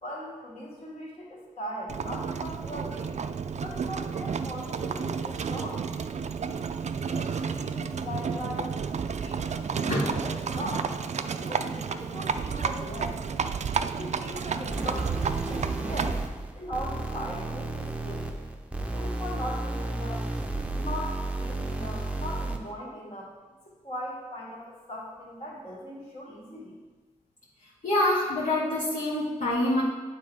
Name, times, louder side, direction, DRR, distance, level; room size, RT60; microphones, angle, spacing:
voice 1, 0.0-3.1 3.6-5.8 7.1-10.9 11.3-13.2 13.8-16.2 16.6-18.3 18.8-20.2 20.7-23.3 23.7-26.8, equal, 50° left, -5 dB, 2.2 m, -39 dB
Livestock farm animals working animals, 1.9-16.3, right 6 dB, 60° right, 0.4 m, -31 dB
sound 1, 14.7-22.7, right 2 dB, 10° right, 0.7 m, -33 dB
voice 2, 27.8-29.8, left 1 dB, 75° left, -8 dB, 1.8 m, -26 dB
8.8 x 3.8 x 4.8 m, 1.2 s
wide cardioid pair, 75°, 13 cm